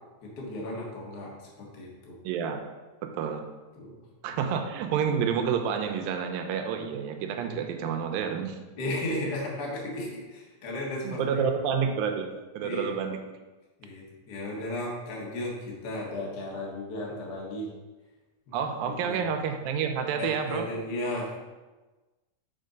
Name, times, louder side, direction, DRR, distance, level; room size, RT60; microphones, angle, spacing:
voice 1, 0.2-2.2 3.8-4.0 4.3-4.4 8.8-11.4 12.6-13.0 13.8-17.7 18.5-18.6 19.0-19.2 20.2-21.4, left 1 dB, 75° left, -3 dB, 0.9 m, -35 dB
voice 2, 2.2-2.6 3.0-3.4 4.2-8.6 11.0-12.3 12.5-13.2 18.5-20.7, right 7 dB, 80° right, 5 dB, 2.3 m, -29 dB
6.6 x 4.4 x 5.1 m, 1.2 s
omnidirectional pair, 4.4 m